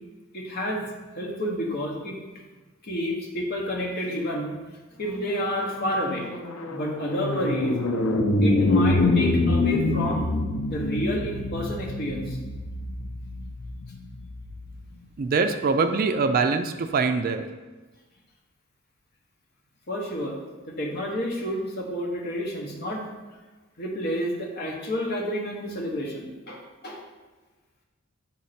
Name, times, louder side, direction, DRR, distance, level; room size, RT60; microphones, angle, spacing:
voice 1, 0.3-0.8 1.1-2.2 2.8-4.6 4.9-6.3 6.7-7.7 8.4-10.3 10.6-12.4 19.9-20.4 20.7-23.1 23.8-27.0, equal, 50° left, -1 dB, 1.3 m, -30 dB
sound 1, 5.2-14.7, left 2 dB, 85° left, 0.7 m, -25 dB
voice 2, 15.2-17.5, right 4 dB, 45° right, 8 dB, 0.4 m, -23 dB
7.6 x 3.8 x 4.3 m, 1.3 s
head